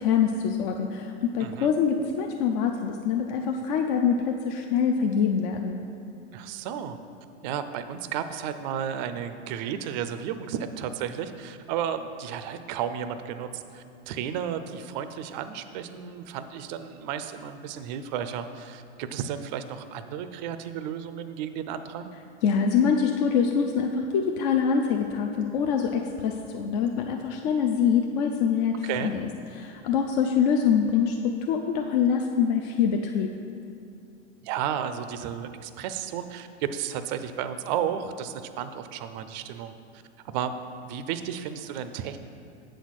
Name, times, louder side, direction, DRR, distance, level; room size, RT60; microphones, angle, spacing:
voice 1, 0.0-5.8 22.4-29.3 29.6-33.3, left 7 dB, 40° left, 3 dB, 0.4 m, -25 dB
voice 2, 1.4-1.7 6.3-7.0 7.4-22.1 28.8-29.1 34.4-39.7 40.2-40.5 40.8-42.2, right 9 dB, 40° right, 10 dB, 0.4 m, -33 dB
7.9 x 4.2 x 6.3 m, 2.6 s
supercardioid pair, 140°, 35 cm